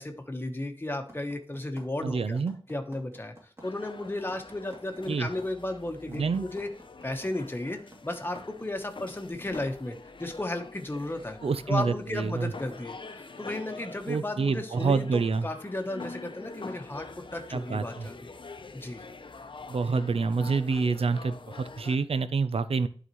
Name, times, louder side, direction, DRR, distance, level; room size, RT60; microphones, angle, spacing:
voice 1, 0.0-2.4 2.7-3.3 3.6-6.7 7.0-11.4 11.7-17.0 17.3-18.3 18.7-19.0, left 1 dB, 20° left, 5 dB, 1.0 m, -34 dB
sound 1, 1.1-8.8, right 1 dB, 30° right, 2.7 m, -51 dB
voice 2, 2.0-2.5 5.1-5.3 6.1-6.5 11.4-12.5 14.1-15.5 17.5-18.1 19.7-22.9, right 4 dB, 85° right, 12 dB, 0.5 m, -27 dB
sound 2, 3.6-22.0, left 3 dB, 55° left, 0.7 m, -46 dB
11.0 x 4.0 x 3.1 m, 0.44 s
wide cardioid pair, 85°, 10 cm